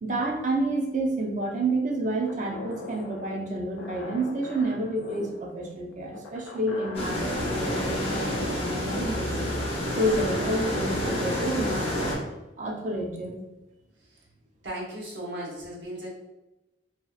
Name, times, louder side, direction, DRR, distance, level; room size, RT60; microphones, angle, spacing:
voice 1, 0.0-9.4 10.0-12.2 12.6-13.3, right 1 dB, 40° right, 1 dB, 0.4 m, -29 dB
sound 1, 2.3-7.4, left 2 dB, 85° left, 0.4 m, -42 dB
sound 2, 6.9-12.1, equal, 30° left, 0.6 m, -29 dB
voice 2, 14.6-16.1, right 1 dB, 70° right, -5 dB, 0.9 m, -36 dB
2.7 x 2.3 x 2.3 m, 1.0 s
head